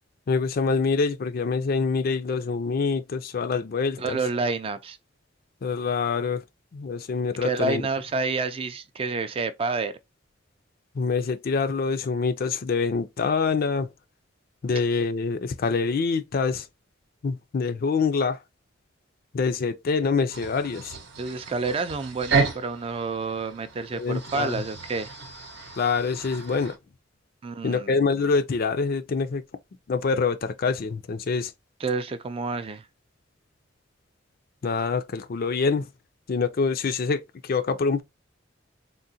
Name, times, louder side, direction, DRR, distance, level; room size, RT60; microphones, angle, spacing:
voice 1, 0.3-4.2 5.6-6.4 6.7-7.8 11.0-13.9 14.6-16.6 17.2-18.4 19.3-20.9 23.9-24.6 25.8-26.8 27.6-29.4 29.9-31.5 34.6-35.9 36.3-38.0, left 4 dB, 50° left, 0.4 m, -25 dB
voice 2, 4.0-5.0 7.4-9.9 21.2-25.1 27.4-28.0 31.8-32.9, right 3 dB, 30° right, 0.3 m, -29 dB
sound 1, 20.3-26.8, right 4 dB, 60° right, 0.7 m, -32 dB
3.7 x 2.1 x 2.6 m
head